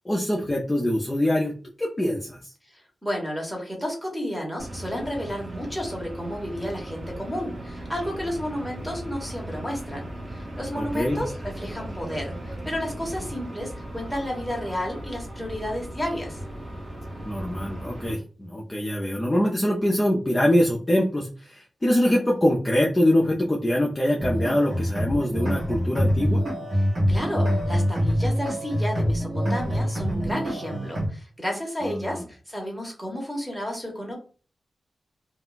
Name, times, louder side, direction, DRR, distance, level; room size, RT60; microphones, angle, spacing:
voice 1, 0.1-1.5 1.8-2.4 10.7-11.2 17.2-26.4 31.8-32.2, left 1 dB, 15° left, -3 dB, 0.4 m, -24 dB
voice 2, 3.0-16.4 27.1-34.1, equal, 5° right, 0 dB, 1.0 m, -32 dB
sound 1, 4.6-18.1, right 1 dB, 35° right, 0.8 m, -37 dB
sound 2, 24.2-31.1, equal, 60° right, 1.0 m, -25 dB
2.3 x 2.1 x 3.8 m, 0.39 s
wide cardioid pair, 145°, 0 cm